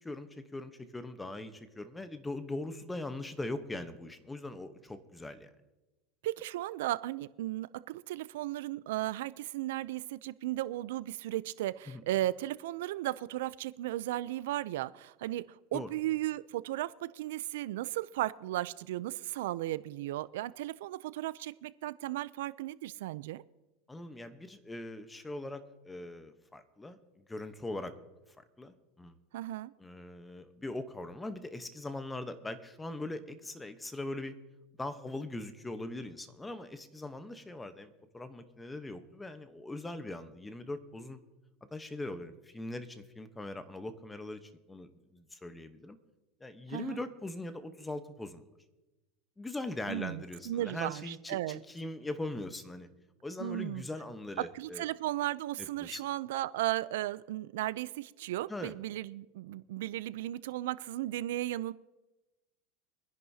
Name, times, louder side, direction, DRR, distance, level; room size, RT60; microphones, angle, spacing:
voice 1, 0.0-5.5 11.9-12.0 15.7-15.9 23.9-27.0 27.3-27.9 28.4-29.2 29.8-34.3 34.8-41.2 41.7-46.0 46.4-48.4 49.4-52.9 53.2-54.9 55.6-56.0 58.5-58.7, left 2 dB, 10° left, 10 dB, 1.0 m, -41 dB
voice 2, 6.2-15.5 15.7-23.4 29.3-29.7 46.7-47.0 49.9-51.6 53.4-53.8 54.4-61.7, right 15 dB, 80° right, 17 dB, 0.4 m, -35 dB
23.5 x 10.5 x 2.8 m, 1.1 s
supercardioid pair, 135°, 0 cm